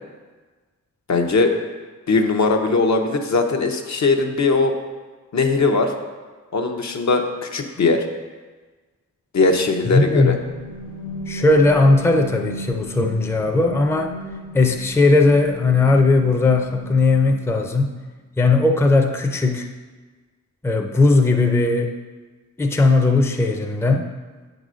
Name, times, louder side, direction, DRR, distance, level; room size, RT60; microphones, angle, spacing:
voice 1, 1.1-1.6 2.1-4.7 5.3-5.9 6.5-8.0 9.3-10.4, left 3 dB, 60° left, 4 dB, 0.7 m, -19 dB
voice 2, 9.9-10.4 11.3-14.1 14.5-18.0 18.4-19.7 20.6-21.9 22.6-24.1, left 3 dB, 10° left, 3 dB, 0.5 m, -17 dB
sound 1, 10.3-17.9, equal, 80° left, 1.1 m, -36 dB
8.3 x 4.0 x 6.2 m, 1.4 s
wide cardioid pair, 130°, 31 cm